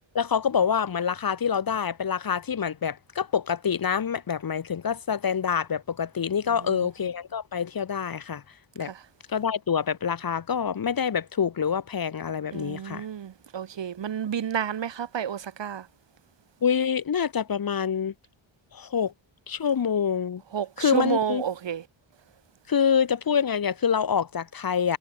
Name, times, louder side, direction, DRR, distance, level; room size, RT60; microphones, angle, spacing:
voice 1, 0.1-8.4 8.8-8.9 9.3-13.1 16.6-18.1 18.7-19.1 19.5-20.4 20.8-21.4 22.7-25.0, left 7 dB, 45° left, 2.0 m, -26 dB
voice 2, 12.5-15.8 20.5-21.8, right 8 dB, 65° right, 3.5 m, -30 dB
wide cardioid pair, 175°, 48 cm